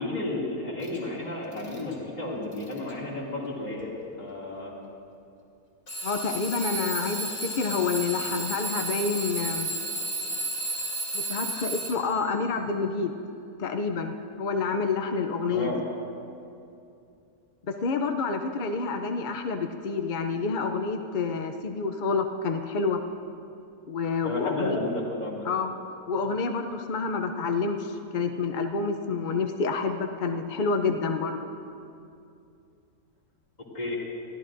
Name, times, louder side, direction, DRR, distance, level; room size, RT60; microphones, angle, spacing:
voice 1, 0.0-4.7 15.5-15.8 24.2-25.4 33.7-34.0, left 2 dB, 25° left, -6 dB, 2.6 m, -32 dB
Alarm / Clock, 0.8-1.0 1.5-1.9 2.5-2.9 3.8-3.9 5.9-12.3, right 2 dB, 50° left, 2.6 m, -33 dB
voice 2, 6.0-9.7 11.1-13.1 13.6-15.7 17.8-23.0 23.9-24.8 25.4-25.7 26.1-31.5, left 4 dB, 70° left, 5 dB, 0.4 m, -28 dB
22.0 x 14.5 x 2.6 m, 2.6 s
omnidirectional pair, 1.6 m